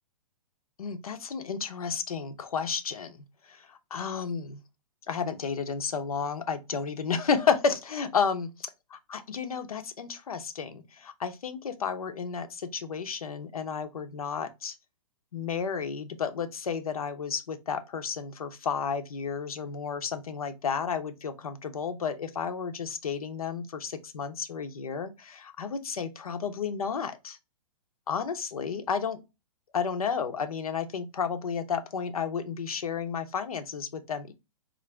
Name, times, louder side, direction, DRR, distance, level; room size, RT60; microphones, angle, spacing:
voice 1, 0.8-4.6 5.1-8.5 8.9-14.8 15.3-27.4 28.1-29.2 29.7-34.3, left 6 dB, 90° left, 0.8 m, -32 dB
3.9 x 2.6 x 3.3 m
hypercardioid pair, 135°, 18 cm